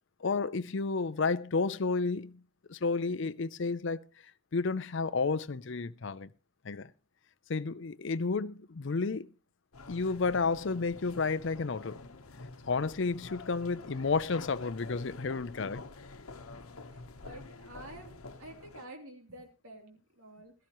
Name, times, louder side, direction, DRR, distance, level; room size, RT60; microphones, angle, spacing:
voice 1, 0.2-2.4 2.7-4.0 4.5-6.3 6.6-6.9 7.5-9.3 9.9-12.0 12.7-15.8, left 4 dB, 55° left, 0.5 m, -31 dB
sound 1, 9.7-18.9, left 3 dB, 85° left, 1.1 m, -48 dB
voice 2, 16.9-20.5, right 1 dB, 80° right, 3.1 m, -50 dB
16.5 x 13.0 x 3.0 m
head